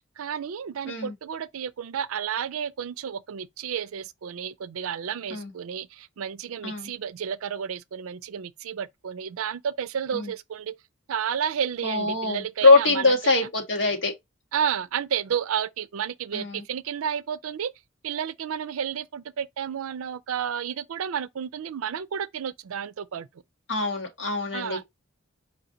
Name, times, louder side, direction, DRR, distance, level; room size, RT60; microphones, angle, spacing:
voice 1, 0.2-10.8 11.1-13.5 14.5-17.7 18.0-23.3 24.5-24.8, right 8 dB, 85° right, 0.4 m, -31 dB
voice 2, 11.8-14.1 16.3-16.6 23.7-24.8, left 3 dB, 60° left, 1.8 m, -23 dB
4.8 x 2.8 x 3.8 m
head